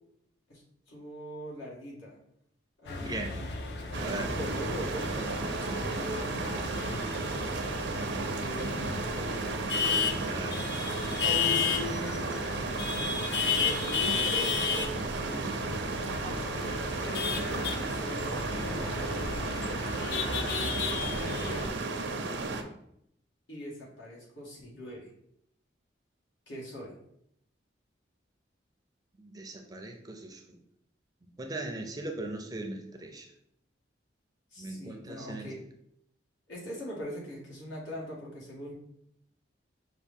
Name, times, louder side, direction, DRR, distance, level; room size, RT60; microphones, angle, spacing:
voice 1, 0.9-2.2 2.8-3.5 4.3-6.3 8.0-9.8 11.0-12.3 13.6-15.5 17.0-18.9 20.4-21.7 23.5-25.1 26.5-27.0 34.5-35.6 36.5-38.7, left 1 dB, 85° left, -4 dB, 1.6 m, -41 dB
sound 1, 2.9-21.7, left 5 dB, 60° left, 0.5 m, -33 dB
voice 2, 3.0-3.4 4.0-4.4 10.3-10.6 29.2-30.6 31.4-33.3 34.6-35.5, right 2 dB, 20° right, 3 dB, 0.4 m, -39 dB
sound 2, 3.9-22.6, right 3 dB, 75° right, 0.5 m, -34 dB
5.8 x 2.3 x 3.5 m, 0.73 s
head